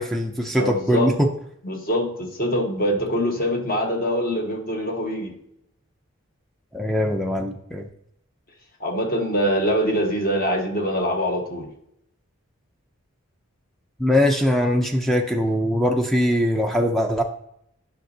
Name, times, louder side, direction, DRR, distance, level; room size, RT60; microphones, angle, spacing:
voice 1, 0.0-1.3 6.7-7.9 14.0-17.2, equal, ahead, 3 dB, 0.4 m, -21 dB
voice 2, 0.5-1.1 1.6-5.3 8.8-11.7, equal, 40° left, 2 dB, 1.3 m, -24 dB
10.5 x 5.9 x 2.7 m, 0.73 s
head